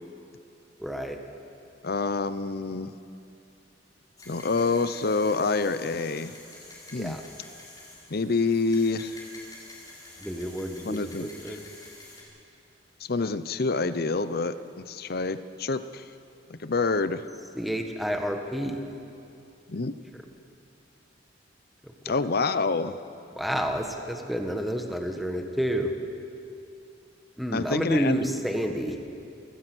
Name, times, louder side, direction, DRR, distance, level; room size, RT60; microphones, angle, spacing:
voice 1, 0.8-1.2 6.9-7.2 10.2-11.7 17.5-18.8 20.1-20.2 21.8-22.3 23.3-25.9 27.4-29.0, equal, ahead, 3 dB, 1.5 m, -30 dB
voice 2, 1.8-2.9 4.3-6.3 6.9-7.2 8.1-9.2 10.8-11.3 13.0-16.0 16.5-17.2 19.7-19.9 22.0-23.0 27.5-28.3, left 3 dB, 55° left, 12 dB, 0.8 m, -27 dB
sound 1, 4.2-12.2, left 2 dB, 20° left, 4.9 m, -48 dB
29.0 x 17.0 x 6.3 m, 2.7 s
head